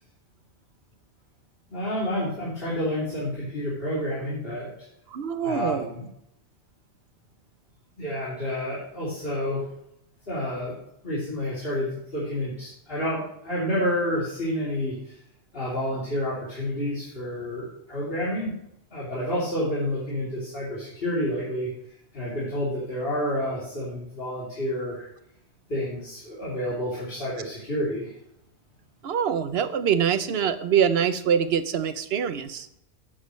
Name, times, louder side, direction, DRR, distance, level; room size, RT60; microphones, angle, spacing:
voice 1, 1.7-4.7 5.4-6.0 8.0-9.7 10.3-10.7 11.0-15.1 15.5-18.5 18.9-21.7 22.1-25.1 25.7-28.1, left 1 dB, 55° left, -8 dB, 3.3 m, -29 dB
voice 2, 5.1-5.9 29.0-32.7, right 8 dB, 65° right, 11 dB, 1.0 m, -24 dB
10.5 x 8.3 x 3.2 m, 0.76 s
omnidirectional pair, 1.1 m